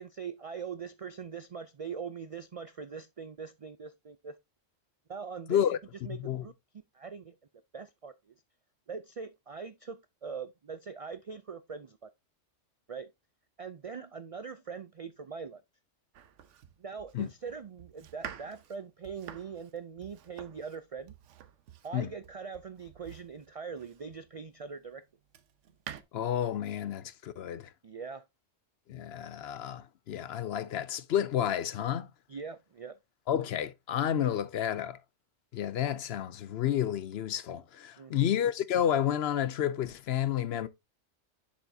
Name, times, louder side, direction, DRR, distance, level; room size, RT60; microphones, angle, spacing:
voice 1, 0.0-4.4 5.1-5.6 6.0-6.5 6.9-7.4 7.7-8.3 8.9-12.1 12.9-13.1 13.6-15.6 16.8-21.1 21.8-25.0 27.8-28.3 32.3-33.0 38.0-38.2, right 6 dB, 60° right, 0.3 m, -42 dB
Domestic sounds home sounds, 16.1-24.3 24.9-26.0, right 9 dB, 85° right, 1.1 m, -49 dB
voice 2, 26.1-27.7 28.9-32.1 33.3-35.0 35.5-40.7, left 10 dB, 65° left, 0.8 m, -30 dB
7.3 x 7.1 x 2.7 m
omnidirectional pair, 1.2 m